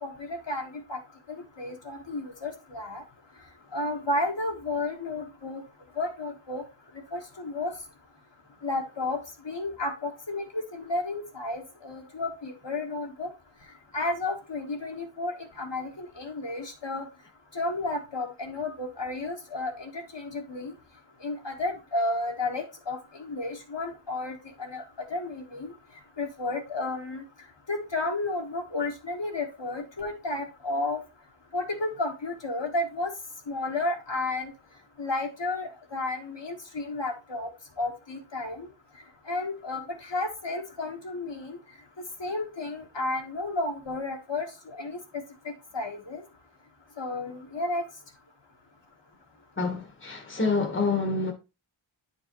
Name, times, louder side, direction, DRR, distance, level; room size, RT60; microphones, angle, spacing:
voice 1, 0.0-1.0 1.3-3.0 3.7-5.6 6.0-6.6 7.1-7.7 8.6-9.2 9.4-13.3 13.9-17.1 17.5-20.7 21.2-24.8 25.1-25.7 26.2-27.2 27.7-31.0 31.5-33.1 33.5-34.5 35.0-37.5 37.8-38.7 39.3-41.6 42.2-45.0 45.7-46.2 47.0-47.8, left 2 dB, 60° left, 1.5 m, -32 dB
voice 2, 49.6-51.3, left 3 dB, 25° left, 1.3 m, -27 dB
8.9 x 4.6 x 3.0 m
wide cardioid pair, 60°, 49 cm